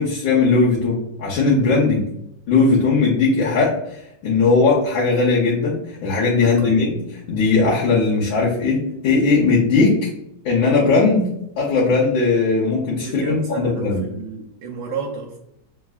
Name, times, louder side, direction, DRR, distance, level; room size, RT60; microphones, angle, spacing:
voice 1, 0.0-2.1 2.5-7.0 7.3-10.1 10.4-11.3 11.6-14.0, left 4 dB, 70° left, -4 dB, 1.6 m, -18 dB
voice 2, 6.4-6.9 13.0-15.4, right 5 dB, 75° right, -1 dB, 1.3 m, -32 dB
6.5 x 2.7 x 2.3 m, 0.78 s
omnidirectional pair, 2.2 m